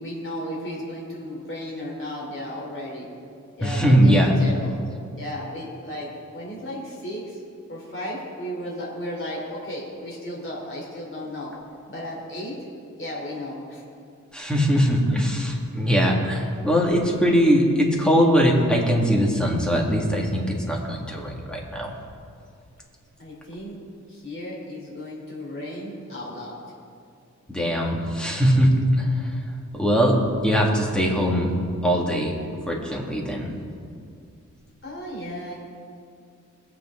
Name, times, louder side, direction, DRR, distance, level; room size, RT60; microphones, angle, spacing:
voice 1, 0.0-3.1 3.6-4.7 5.2-7.4 7.7-11.5 11.9-12.5 13.0-13.8 23.2-23.8 24.1-26.6 34.8-35.6, equal, 45° left, -4 dB, 3.6 m, -34 dB
voice 2, 3.6-4.3 14.3-21.9 27.5-29.0 29.7-30.2 30.4-31.5 31.8-32.3 32.7-33.5, equal, 5° left, -2 dB, 2.1 m, -21 dB
20.5 x 8.0 x 3.8 m, 2.4 s
wide cardioid pair, 105°, 30 cm